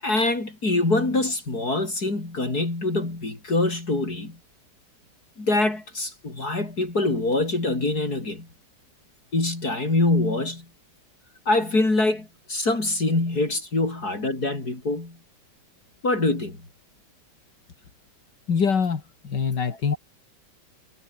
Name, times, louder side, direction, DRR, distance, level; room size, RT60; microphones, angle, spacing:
voice 1, 0.0-4.4 5.4-8.5 9.3-10.7 11.5-15.2 16.0-16.6 19.9-20.0, left 2 dB, 60° left, 6.0 m, -24 dB
voice 2, 18.5-20.0, left 6 dB, 75° left, 2.8 m, -24 dB
omnidirectional pair, 1.9 m